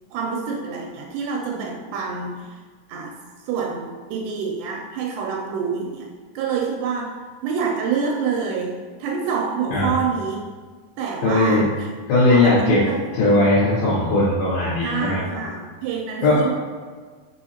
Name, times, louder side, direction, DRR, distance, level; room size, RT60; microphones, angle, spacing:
voice 1, 0.1-2.6 2.9-3.2 3.4-10.4 11.0-11.9 12.3-13.3 14.8-16.5, right 6 dB, 85° right, 0 dB, 2.1 m, -27 dB
voice 2, 11.2-11.6 12.1-12.8 13.1-15.2 16.2-16.4, left 2 dB, 75° left, -10 dB, 2.4 m, -18 dB
5.5 x 3.2 x 2.7 m, 1.5 s
omnidirectional pair, 3.6 m